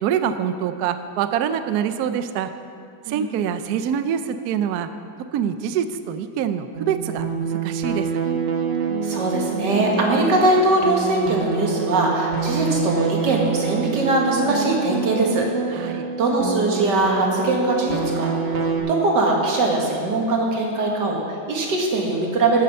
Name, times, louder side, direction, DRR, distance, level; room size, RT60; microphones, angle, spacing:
voice 1, 0.0-2.5 3.1-4.9 5.3-8.2 15.8-16.1, right 8 dB, 85° right, 10 dB, 0.8 m, -25 dB
sound 1, 6.7-18.8, right 5 dB, 40° right, 0.9 m, -27 dB
voice 2, 9.0-15.5 15.8-22.6, right 2 dB, 55° right, -1 dB, 2.1 m, -21 dB
12.5 x 7.5 x 5.4 m, 2.4 s
omnidirectional pair, 2.3 m